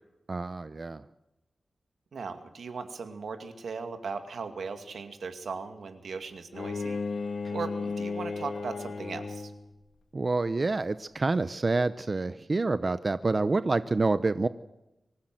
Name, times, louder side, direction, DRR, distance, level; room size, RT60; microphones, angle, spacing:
voice 1, 0.3-1.0 7.4-7.5 10.1-14.5, right 3 dB, 35° right, 13 dB, 0.7 m, -27 dB
voice 2, 2.1-7.0 7.5-9.5, right 5 dB, 85° right, 7 dB, 2.4 m, -38 dB
Bowed string instrument, 6.5-9.8, left 4 dB, 75° left, 2.1 m, -34 dB
24.5 x 16.0 x 7.8 m, 0.92 s
wide cardioid pair, 110°, 0 cm